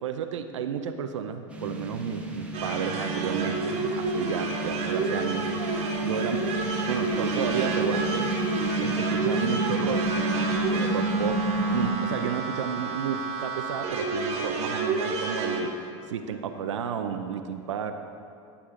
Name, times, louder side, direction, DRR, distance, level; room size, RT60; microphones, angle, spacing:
voice 1, 0.0-5.5 6.0-8.3 8.8-10.1 10.5-15.7 16.1-17.9, right 7 dB, 85° right, 7 dB, 0.6 m, -32 dB
sound 1, 1.5-11.9, right 1 dB, 10° right, 1.3 m, -30 dB
sound 2, 2.5-15.6, right 4 dB, 45° right, 1.2 m, -30 dB
12.0 x 8.3 x 3.8 m, 2.4 s
hypercardioid pair, 100°, 15 cm